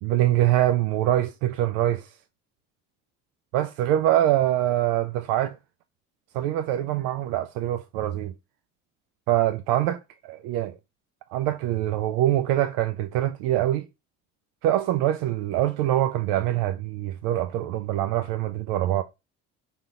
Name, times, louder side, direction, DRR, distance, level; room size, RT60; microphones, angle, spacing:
voice 1, 0.0-2.1 3.5-5.6 6.3-8.3 9.3-10.7 11.3-13.9 14.6-19.0, right 13 dB, 80° right, 0.5 m, -24 dB
5.3 x 4.0 x 2.3 m
supercardioid pair, 75°, 36 cm